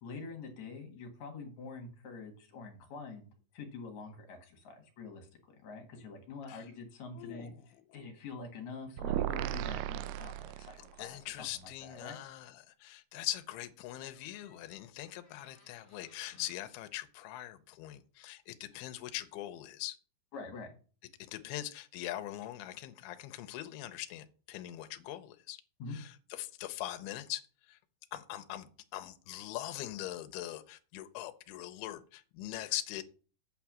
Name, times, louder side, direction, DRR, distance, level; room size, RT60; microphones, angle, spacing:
voice 1, 0.0-5.3 5.6-12.2 16.3-16.4 20.3-20.7 25.8-26.0, left 4 dB, 55° left, 2.5 m, -46 dB
voice 2, 7.2-7.6 11.0-20.0 21.2-25.6 25.9-27.8 28.1-33.0, left 14 dB, 80° left, 2.5 m, -42 dB
sound 1, 9.0-11.1, right 13 dB, 85° right, 2.4 m, -35 dB
Door, 14.1-16.7 18.4-18.5 18.7-19.1, left 2 dB, 20° left, 3.2 m, -64 dB
8.7 x 4.6 x 7.4 m
omnidirectional pair, 4.9 m